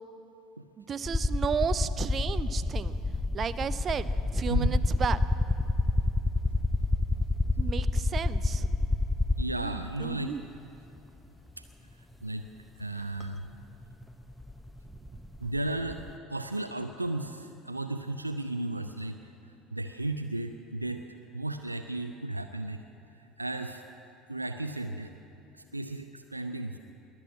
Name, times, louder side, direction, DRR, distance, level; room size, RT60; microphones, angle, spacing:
voice 1, 0.8-2.9 3.3-5.2 7.6-8.7 9.6-10.4 15.1-15.2, right 7 dB, 35° right, 15 dB, 0.6 m, -33 dB
sound 1, 1.1-9.8 11.0-11.1 13.2-13.3 13.5-16.1, left 2 dB, 5° left, 0.6 m, -28 dB
voice 2, 9.4-10.3 11.6-11.7 12.2-12.5 12.8-13.5 15.4-16.0 16.3-19.2 19.7-21.0 21.3-22.8 23.4-23.8 24.3-25.1 25.5-26.8, right 2 dB, 90° right, 7 dB, 0.4 m, -34 dB
21.5 x 7.7 x 8.4 m, 2.9 s
figure-of-eight pair, 65°, 0 cm